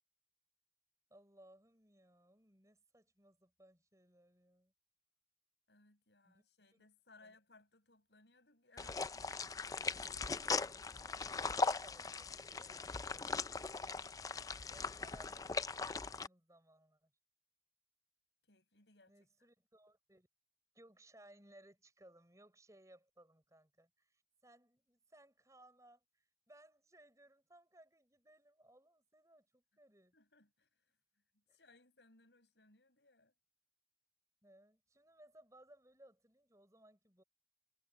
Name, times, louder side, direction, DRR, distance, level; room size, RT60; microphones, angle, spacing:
voice 1, 1.1-4.7 6.2-6.4 6.7-6.9 7.2-7.4 10.2-13.8 14.7-15.4 15.7-17.1 19.1-20.3 20.7-30.1 31.5-31.6 34.4-37.2, right 1 dB, 20° right, 6.0 m, -64 dB
voice 2, 5.7-9.9 14.6-14.9 18.5-19.1 30.1-30.7 31.3-33.3, left 3 dB, 80° left, 7.3 m, -66 dB
sound 1, 8.8-16.3, left 4 dB, 20° left, 0.4 m, -39 dB
head